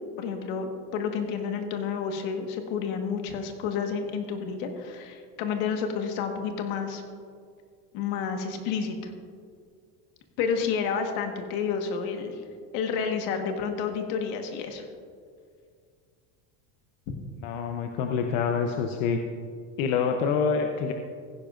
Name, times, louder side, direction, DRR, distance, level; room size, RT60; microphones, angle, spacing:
voice 1, 0.2-7.0 7.9-9.1 10.4-12.4 12.7-14.8, left 6 dB, 70° left, 5 dB, 1.5 m, -30 dB
voice 2, 17.4-19.2 19.8-20.9, left 6 dB, 90° left, 4 dB, 0.8 m, -26 dB
15.5 x 10.5 x 2.5 m, 2.1 s
supercardioid pair, 130°, 37 cm